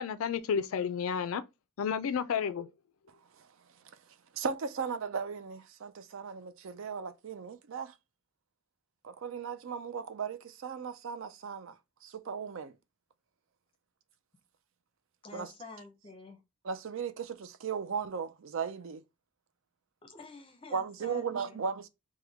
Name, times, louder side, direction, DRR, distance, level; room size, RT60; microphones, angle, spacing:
voice 1, 0.0-1.4 1.8-2.7, left 7 dB, 70° left, 0.3 m, -31 dB
voice 2, 4.3-7.9 9.0-11.8 12.0-12.7 15.3-15.5 16.6-19.0 20.7-21.9, right 6 dB, 60° right, 0.4 m, -37 dB
voice 3, 15.2-16.4 20.0-21.6, left 3 dB, 25° left, 0.6 m, -49 dB
3.5 x 2.2 x 3.4 m
head